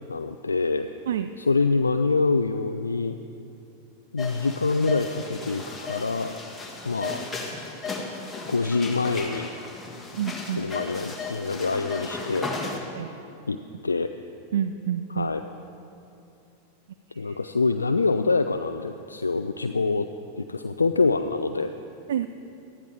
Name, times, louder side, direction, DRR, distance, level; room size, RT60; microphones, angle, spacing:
voice 1, 0.1-0.9 1.4-3.2 4.1-6.4 6.8-7.2 8.5-9.5 10.6-12.5 13.5-13.6 13.8-14.1 15.1-15.4 17.2-20.1 20.4-21.7, left 3 dB, 75° left, 8 dB, 0.3 m, -25 dB
sound 1, 4.2-12.8, left 3 dB, 10° left, 1.6 m, -35 dB
voice 2, 10.1-10.7 12.9-13.1 14.5-15.3 17.1-17.4 22.1-22.3, right 9 dB, 60° right, 11 dB, 0.3 m, -28 dB
18.5 x 13.0 x 3.5 m, 2.7 s
figure-of-eight pair, 90°, 0 cm